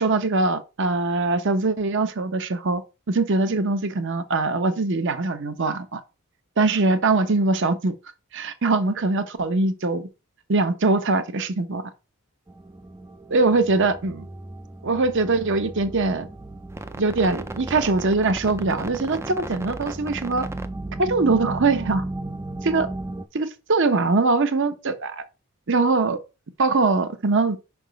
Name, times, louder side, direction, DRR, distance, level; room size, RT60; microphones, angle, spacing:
voice 1, 0.0-2.8 3.1-6.0 6.6-7.9 8.3-10.1 10.5-11.8 13.3-14.3 14.8-16.3 17.0-20.5 21.0-22.0 22.6-22.9 23.3-25.2 25.7-26.2 26.6-27.6, right 3 dB, 55° right, 0.8 m, -22 dB
sound 1, 12.5-23.3, right 2 dB, 10° right, 0.4 m, -35 dB
5.6 x 3.5 x 5.1 m
head